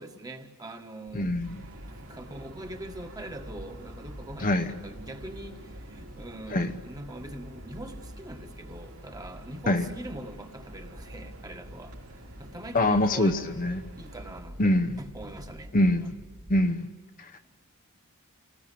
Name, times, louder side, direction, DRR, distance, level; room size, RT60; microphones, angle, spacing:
voice 1, 0.0-1.4 1.8-16.1, right 1 dB, 15° right, 5 dB, 1.7 m, -42 dB
voice 2, 1.1-1.6 4.4-4.7 6.5-6.7 9.7-9.8 12.7-13.8 14.6-15.0 15.7-16.1 16.5-16.9 17.2-17.5, left 1 dB, 40° left, 8 dB, 0.9 m, -24 dB
sound 1, 1.1-16.7, equal, 45° right, 2.1 m, -47 dB
sound 2, 1.4-14.4, right 1 dB, 70° right, 4.2 m, -51 dB
28.5 x 19.5 x 8.5 m, 1.3 s
head